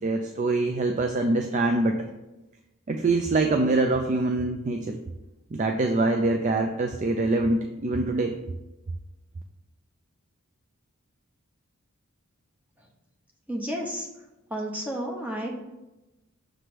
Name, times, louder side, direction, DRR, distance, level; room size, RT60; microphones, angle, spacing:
voice 1, 0.0-2.0 2.9-5.0 5.5-8.3, right 2 dB, 35° right, 4 dB, 0.4 m, -24 dB
voice 2, 13.5-14.1 14.5-15.5, equal, 5° right, -1 dB, 0.9 m, -31 dB
6.5 x 3.3 x 5.9 m, 1.0 s
head